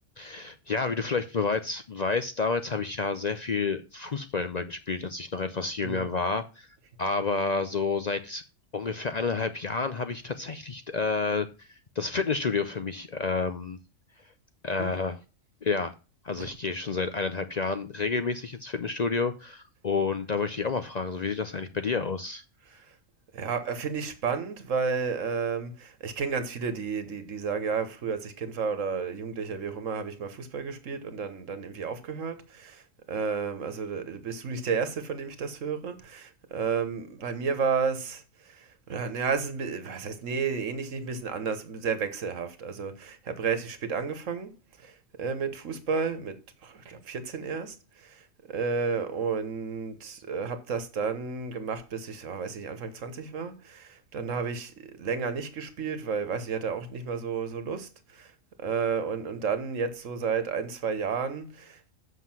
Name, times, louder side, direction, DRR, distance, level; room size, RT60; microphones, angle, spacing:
voice 1, 0.2-6.7 7.0-8.4 8.7-11.7 12.0-13.8 14.6-15.2 15.6-15.9 16.2-22.4, left 4 dB, 50° left, 0.5 m, -29 dB
voice 2, 23.3-32.8 33.1-44.5 44.8-58.3 58.6-61.9, right 5 dB, 70° right, 1.6 m, -32 dB
7.6 x 5.8 x 6.0 m
omnidirectional pair, 1.4 m